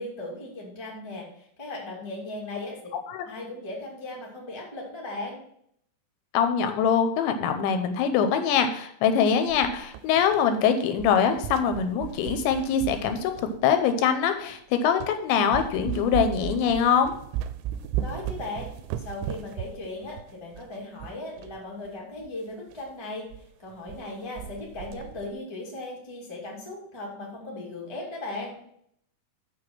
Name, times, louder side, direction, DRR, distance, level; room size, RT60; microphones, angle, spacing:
voice 1, 0.0-2.8 3.2-5.4 18.0-18.7 18.9-28.5, left 2 dB, 20° left, -3 dB, 0.7 m, -37 dB
voice 2, 6.3-13.3 13.6-17.1, left 7 dB, 80° left, 8 dB, 2.9 m, -23 dB
sound 1, 9.5-10.6 10.9-13.9 14.5-14.6 15.0-15.2 15.5-21.6 21.9-22.0 22.2-22.3 22.7-22.9 23.3-23.4 23.7-24.1 24.4-25.3, right 11 dB, 85° right, 3.0 m, -36 dB
6.8 x 6.6 x 6.0 m, 0.69 s
omnidirectional pair, 5.4 m